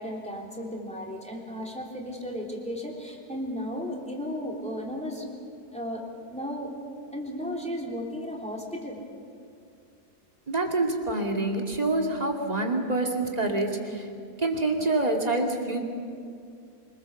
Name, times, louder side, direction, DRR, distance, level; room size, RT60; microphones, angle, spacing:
voice 1, 0.0-5.3 5.7-6.0 6.3-6.7 7.1-9.0, equal, 5° left, -2 dB, 3.3 m, -34 dB
voice 2, 10.5-14.1 14.4-15.8, right 2 dB, 25° right, 1 dB, 2.5 m, -26 dB
26.0 x 20.5 x 7.2 m, 2.4 s
omnidirectional pair, 1.7 m